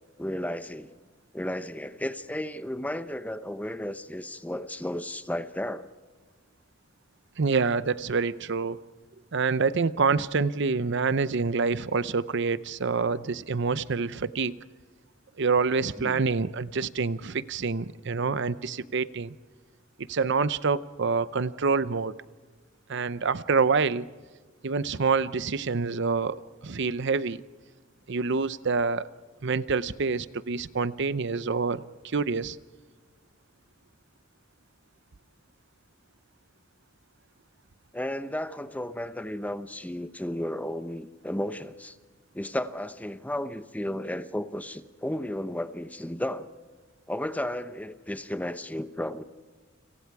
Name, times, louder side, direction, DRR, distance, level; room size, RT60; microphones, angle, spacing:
voice 1, 0.2-0.9 1.3-5.9 16.0-16.2 37.9-42.0 42.3-46.5 47.1-49.2, left 1 dB, 10° left, 11 dB, 0.8 m, -33 dB
voice 2, 7.4-8.8 9.3-14.6 15.4-19.3 20.1-22.1 22.9-24.1 24.6-26.4 26.6-27.4 28.1-29.1 29.4-32.6, right 4 dB, 60° right, 15 dB, 0.7 m, -26 dB
30.0 x 27.5 x 4.8 m, 1.4 s
head